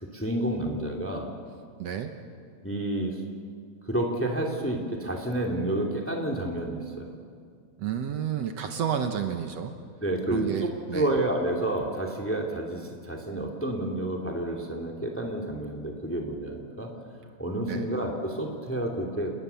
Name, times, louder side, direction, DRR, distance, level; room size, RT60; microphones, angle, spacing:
voice 1, 0.0-1.3 2.6-3.2 3.9-7.1 10.0-16.9 17.4-19.3, right 1 dB, 5° left, 1 dB, 2.2 m, -30 dB
voice 2, 1.8-2.1 7.8-9.7 10.3-11.1 17.7-17.9, right 8 dB, 65° right, 6 dB, 2.1 m, -31 dB
29.5 x 19.0 x 7.0 m, 2.1 s
omnidirectional pair, 3.4 m